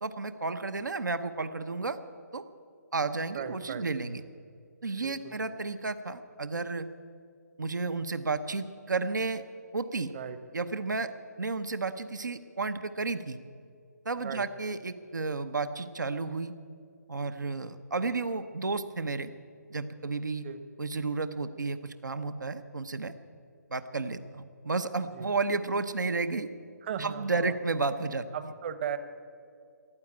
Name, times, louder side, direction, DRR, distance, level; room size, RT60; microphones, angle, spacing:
voice 1, 0.0-2.0 2.3-2.4 2.9-4.2 4.8-6.9 7.6-9.4 9.7-10.1 10.5-11.1 11.4-13.4 14.0-16.5 17.1-19.3 19.7-20.4 20.8-23.1 23.7-26.5 27.0-28.3, right 3 dB, 80° right, 10 dB, 0.9 m, -32 dB
voice 2, 3.3-3.8 5.0-5.3 10.1-10.4 14.2-14.4 20.4-20.6 25.1-25.3 26.8-27.5 28.3-29.0, right 8 dB, 35° right, 11 dB, 1.0 m, -37 dB
14.5 x 11.0 x 8.7 m, 2.3 s
figure-of-eight pair, 150°, 10 cm